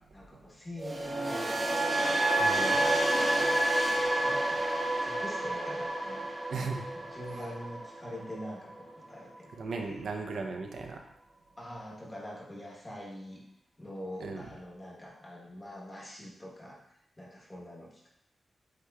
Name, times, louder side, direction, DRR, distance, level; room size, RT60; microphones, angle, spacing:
voice 1, 0.1-1.8 3.8-4.7 5.0-6.3 6.9-9.5 9.8-10.0 11.6-13.5 13.8-16.9 17.2-18.1, left 1 dB, 15° left, -4 dB, 1.0 m, -44 dB
sound 1, 0.8-8.9 9.2-9.5, right 1 dB, 20° right, 0.4 m, -29 dB
voice 2, 2.4-3.0 6.5-6.9 9.6-11.0 14.2-14.5, right 4 dB, 70° right, 3 dB, 0.5 m, -37 dB
8.0 x 2.9 x 2.3 m, 0.75 s
wide cardioid pair, 175°, 0 cm